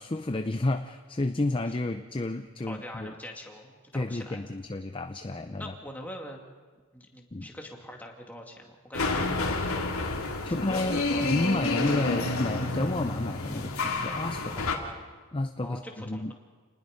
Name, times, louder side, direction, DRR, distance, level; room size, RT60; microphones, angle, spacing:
voice 1, 0.0-3.1 3.9-5.7 7.3-7.5 10.4-14.7 15.3-16.3, left 2 dB, 25° left, 8 dB, 0.6 m, -31 dB
voice 2, 2.7-4.4 5.6-6.4 6.9-9.8 10.7-11.8 14.6-15.2 15.6-16.3, left 1 dB, 10° left, 1 dB, 2.3 m, -43 dB
sound 1, 8.9-14.7, left 3 dB, 80° left, 2.6 m, -29 dB
28.5 x 20.0 x 5.2 m, 1.5 s
head